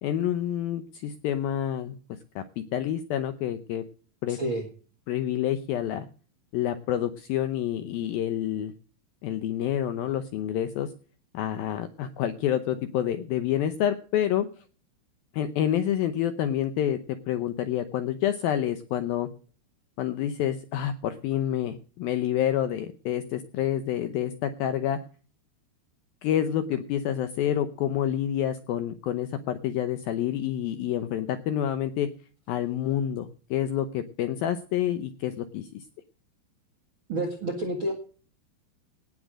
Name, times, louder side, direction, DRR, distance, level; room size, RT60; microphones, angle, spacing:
voice 1, 0.0-3.8 4.2-4.4 5.1-6.1 6.5-8.7 9.2-10.9 11.3-14.5 15.3-17.0 17.3-19.3 20.0-25.0 26.2-32.1 32.5-35.8, left 10 dB, 80° left, 10 dB, 2.2 m, -28 dB
voice 2, 4.3-4.6 37.1-37.9, right 1 dB, 50° right, 5 dB, 1.5 m, -29 dB
18.0 x 7.7 x 6.4 m, 0.40 s
omnidirectional pair, 5.2 m